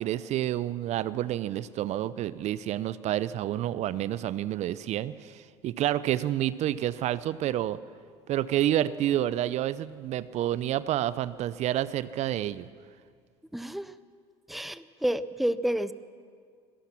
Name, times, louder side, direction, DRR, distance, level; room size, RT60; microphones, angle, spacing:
voice 1, 0.0-7.8 8.3-12.7, right 12 dB, 55° right, 16 dB, 0.6 m, -29 dB
voice 2, 13.5-13.9 14.5-15.9, right 1 dB, ahead, 14 dB, 0.8 m, -29 dB
25.5 x 17.5 x 5.9 m, 2.1 s
hypercardioid pair, 70°, 14 cm